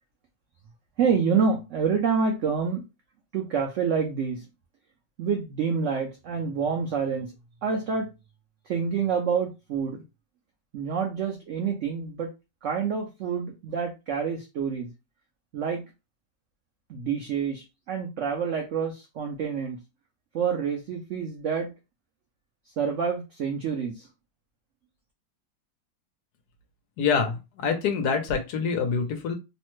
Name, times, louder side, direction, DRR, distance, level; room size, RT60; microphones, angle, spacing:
voice 1, 1.0-2.8 3.3-4.5 5.2-7.3 7.6-8.1 8.7-10.0 10.7-12.3 12.6-14.9 15.5-15.8 16.9-19.8 20.3-21.7 22.8-24.1, right 6 dB, 80° right, 3 dB, 0.6 m, -27 dB
voice 2, 27.0-29.4, left 5 dB, 70° left, 5 dB, 1.1 m, -26 dB
3.1 x 2.1 x 3.0 m, 0.25 s
omnidirectional pair, 1.9 m